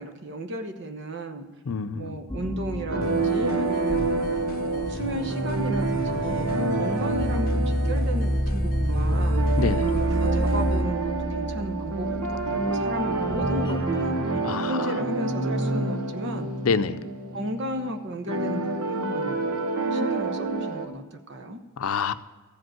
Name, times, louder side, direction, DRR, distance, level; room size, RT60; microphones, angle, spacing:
voice 1, 0.0-1.4 1.9-9.4 9.9-14.1 14.7-16.5 17.3-19.5 19.9-21.6, right 1 dB, 55° right, 6 dB, 1.0 m, -34 dB
voice 2, 1.7-2.1 9.6-9.9 14.4-14.8 16.6-17.0 21.8-22.1, left 5 dB, 80° left, 12 dB, 0.5 m, -26 dB
sound 1, 2.3-14.5, equal, 20° left, 1.9 m, -29 dB
sound 2, 2.9-20.9, right 3 dB, 90° right, 1.0 m, -28 dB
sound 3, 3.0-10.8, left 2 dB, 45° left, 0.7 m, -43 dB
14.0 x 5.3 x 7.5 m, 1.3 s
head